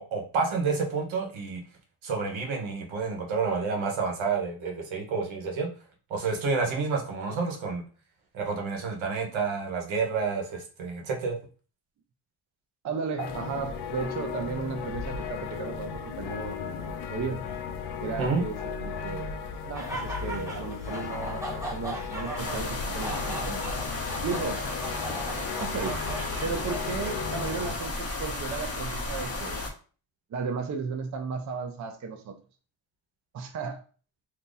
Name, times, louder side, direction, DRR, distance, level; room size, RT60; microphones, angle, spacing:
voice 1, 0.0-1.6 2.0-5.7 6.1-7.8 8.3-11.4 18.2-18.4, right 4 dB, 85° right, 2 dB, 1.1 m, -29 dB
voice 2, 12.8-17.4 18.0-19.3 19.7-23.6 24.2-24.6 25.6-26.0 26.4-29.6 30.3-32.4 33.3-33.8, right 5 dB, 40° right, 5 dB, 0.5 m, -34 dB
sound 1, 13.2-27.8, left 6 dB, 60° left, 0.6 m, -36 dB
sound 2, 19.7-26.9, right 1 dB, 5° right, 0.8 m, -39 dB
sound 3, 22.4-29.7, left 2 dB, 30° left, 0.8 m, -34 dB
2.8 x 2.5 x 3.8 m, 0.38 s
cardioid pair, 105°, 46 cm